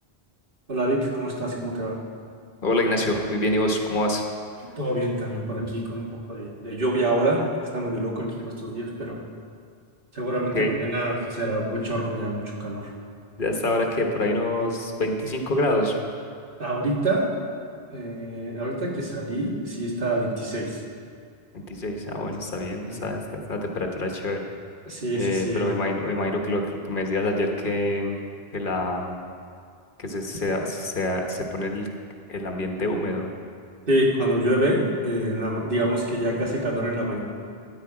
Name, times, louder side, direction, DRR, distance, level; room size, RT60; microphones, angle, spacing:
voice 1, 0.7-2.0 4.8-7.4 7.7-9.2 10.1-12.9 16.6-17.3 17.9-20.8 22.9-23.1 24.9-25.6 33.9-37.2, right 1 dB, 60° right, -2 dB, 1.8 m, -26 dB
voice 2, 2.6-4.2 10.5-10.7 13.4-16.0 21.5-23.2 23.5-24.5 25.1-28.2 28.5-29.2 30.0-31.9 32.3-33.3, left 1 dB, 55° left, 2 dB, 1.2 m, -26 dB
13.0 x 9.5 x 4.8 m, 2.3 s
omnidirectional pair, 1.0 m